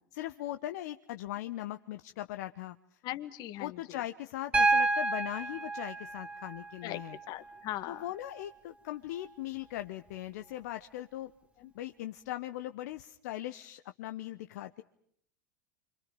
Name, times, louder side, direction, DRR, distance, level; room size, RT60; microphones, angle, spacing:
voice 1, 0.1-3.0 3.6-7.2 7.9-11.3 11.7-14.8, left 14 dB, 65° left, 9 dB, 1.0 m, -39 dB
voice 2, 3.0-4.0 6.8-7.0 7.3-8.1 11.6-11.7, left 14 dB, 50° left, 11 dB, 2.0 m, -39 dB
Piano, 4.5-8.5 10.1-10.2, right 3 dB, 15° right, 2.4 m, -31 dB
29.5 x 26.0 x 5.3 m, 0.67 s
figure-of-eight pair, 85°, 10 cm